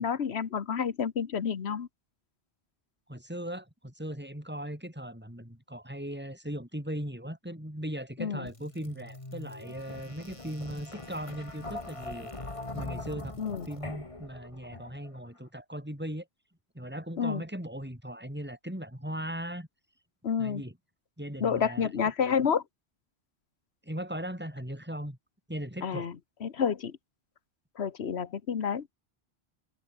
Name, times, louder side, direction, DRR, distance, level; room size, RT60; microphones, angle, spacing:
voice 1, 0.0-1.9 8.2-8.5 13.4-13.7 17.2-17.4 20.2-20.6 21.4-22.6 25.8-26.1 26.4-27.0 27.8-28.9, left 7 dB, 85° left, 1.4 m, -29 dB
voice 2, 3.1-12.3 12.7-13.3 13.7-16.3 16.7-19.7 20.4-20.7 21.2-21.9 23.8-25.2 25.5-26.1, equal, 10° right, 6.3 m, -38 dB
sound 1, 8.5-15.2, left 2 dB, 30° left, 2.3 m, -42 dB
omnidirectional pair, 1.1 m